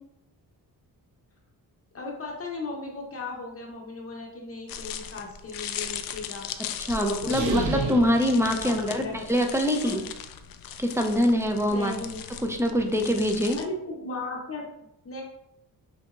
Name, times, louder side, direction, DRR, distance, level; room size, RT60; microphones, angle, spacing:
voice 1, 1.9-7.9 8.6-9.3 9.8-10.1 11.4-12.2 13.6-14.7 15.0-15.2, left 3 dB, 40° left, -1 dB, 0.8 m, -36 dB
sound 1, 4.7-13.7, left 8 dB, 65° left, 0.5 m, -38 dB
voice 2, 6.8-10.0 10.8-11.9 12.5-13.6, equal, 5° right, 3 dB, 0.6 m, -24 dB
sound 2, 7.2-9.4, right 5 dB, 80° right, 0.7 m, -33 dB
6.2 x 2.8 x 2.4 m, 0.84 s
cardioid pair, 105°, 37 cm